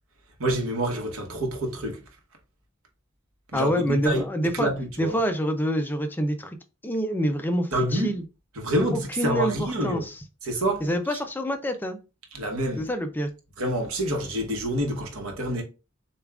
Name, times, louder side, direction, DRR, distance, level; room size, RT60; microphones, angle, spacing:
voice 1, 0.4-2.0 3.5-4.2 4.5-5.1 7.7-8.1 8.6-10.0 10.4-10.8 11.1-11.2 12.3-12.9 13.6-15.6, right 1 dB, 90° right, 1.1 m, -27 dB
voice 2, 3.5-4.7 5.0-6.6 6.8-8.2 8.9-10.2 10.8-12.0 12.8-13.3, equal, 10° left, 0.4 m, -26 dB
6.8 x 2.3 x 2.3 m
head